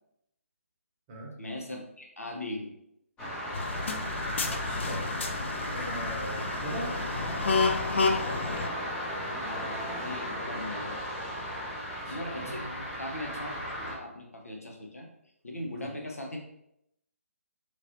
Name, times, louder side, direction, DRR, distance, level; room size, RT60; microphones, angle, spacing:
voice 1, 1.4-2.7 9.4-11.0 12.1-12.6 13.0-15.1 15.4-16.4, left 1 dB, 80° left, 0 dB, 0.8 m, -39 dB
sound 1, 3.2-13.9, equal, 10° left, 0.7 m, -36 dB
sound 2, 3.5-8.7, left 4 dB, 55° left, 0.3 m, -30 dB
voice 2, 4.5-5.1 5.7-7.0 12.0-12.9 15.8-15.9, right 1 dB, 25° right, -3 dB, 0.9 m, -40 dB
3.1 x 2.9 x 2.6 m, 0.78 s
figure-of-eight pair, 140°, 8 cm